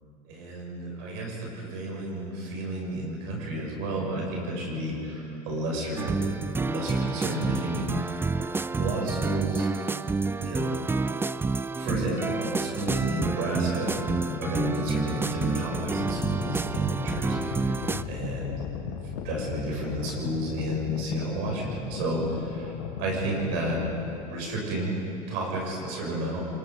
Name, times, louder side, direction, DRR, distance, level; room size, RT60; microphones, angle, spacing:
voice 1, 0.3-8.5 8.7-9.7 10.4-10.8 11.7-18.9 19.2-22.7 23.0-23.8 24.3-25.0 25.3-26.4, right 1 dB, 65° right, -2 dB, 6.7 m, -32 dB
sound 1, 6.0-18.0, right 4 dB, 10° right, 0.4 m, -29 dB
sound 2, 13.9-24.2, left 8 dB, 75° left, 1.9 m, -37 dB
25.5 x 22.0 x 5.3 m, 3.0 s
hypercardioid pair, 95°, 20 cm